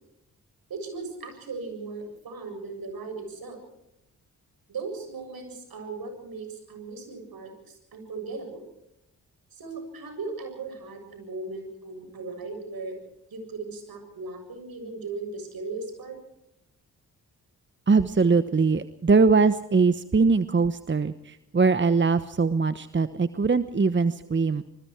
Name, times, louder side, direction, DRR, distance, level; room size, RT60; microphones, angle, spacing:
voice 1, 0.7-3.6 4.7-8.7 9.5-13.0 13.3-16.2, right 3 dB, 60° right, 6 dB, 7.4 m, -37 dB
voice 2, 17.9-24.6, right 4 dB, 30° right, 13 dB, 1.1 m, -22 dB
26.5 x 21.0 x 4.7 m, 0.84 s
hypercardioid pair, 40°, 39 cm